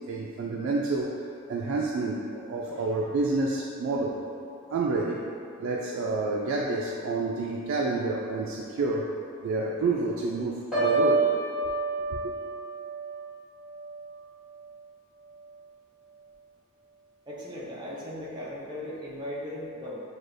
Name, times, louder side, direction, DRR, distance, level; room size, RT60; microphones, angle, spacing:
voice 1, 0.1-1.1 1.5-4.2 4.7-5.2 5.6-9.1 9.4-11.3 12.1-12.3, right 3 dB, 70° right, -2 dB, 0.3 m, -29 dB
Piano, 10.7-14.7 15.1-15.4, right 3 dB, 5° right, 1.3 m, -29 dB
voice 2, 17.3-20.0, left 1 dB, 20° right, -6 dB, 0.7 m, -37 dB
6.3 x 2.3 x 2.5 m, 2.5 s
head